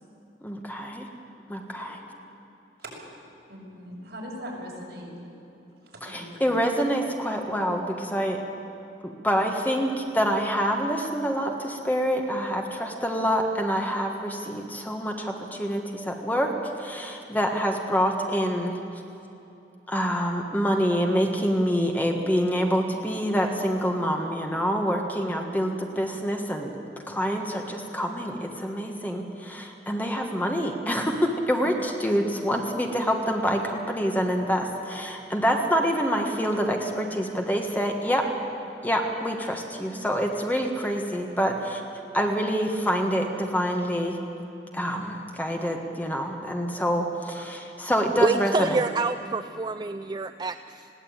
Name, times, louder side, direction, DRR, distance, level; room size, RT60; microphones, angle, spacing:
voice 1, 0.4-1.1 1.5-1.9 6.0-8.4 9.0-16.5 16.8-18.8 19.9-26.7 27.1-38.3 38.8-41.8 42.1-44.2 44.7-48.8, equal, 10° left, 2 dB, 1.5 m, -26 dB
voice 2, 3.5-5.1 5.8-6.5 31.6-31.7, equal, 65° right, -3 dB, 6.1 m, -40 dB
voice 3, 48.2-50.9, right 3 dB, 25° right, 10 dB, 0.4 m, -27 dB
20.5 x 16.5 x 8.8 m, 2.9 s
head